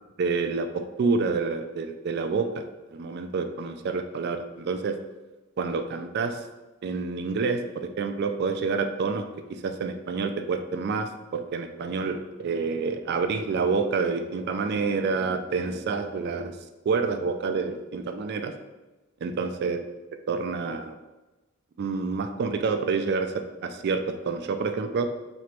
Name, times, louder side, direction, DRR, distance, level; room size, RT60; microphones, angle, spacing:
voice 1, 0.2-5.0 5.6-6.4 6.8-9.2 9.5-16.6 16.8-18.5 19.2-19.8 20.3-21.0 21.8-23.3 23.6-25.1, right 4 dB, 55° right, 7 dB, 0.3 m, -28 dB
3.1 x 2.9 x 4.4 m, 1.1 s
head